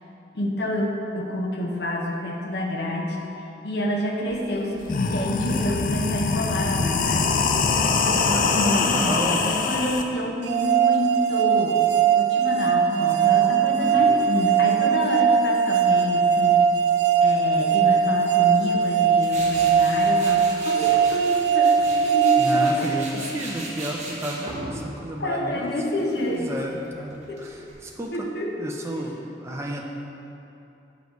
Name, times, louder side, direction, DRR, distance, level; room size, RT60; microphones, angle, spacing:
voice 1, 0.3-3.2 3.6-7.5 8.0-11.8 12.2-16.7 17.2-22.9 24.5-24.6 25.2-26.5 27.3-27.4 28.1-28.6 28.9-29.1, left 1 dB, 75° left, -1 dB, 0.8 m, -28 dB
sound 1, 4.3-4.4 4.8-10.0, left 4 dB, 50° left, 0.3 m, -23 dB
voice 2, 8.1-9.5 12.7-14.1 22.4-25.7 26.2-28.3 28.6-29.8, right 1 dB, 15° right, 0 dB, 0.4 m, -32 dB
sound 2, 10.5-23.4, right 7 dB, 85° right, 0.4 m, -20 dB
Tools, 19.2-28.1, right 1 dB, 40° right, 0.9 m, -38 dB
7.7 x 5.0 x 3.1 m, 2.8 s
head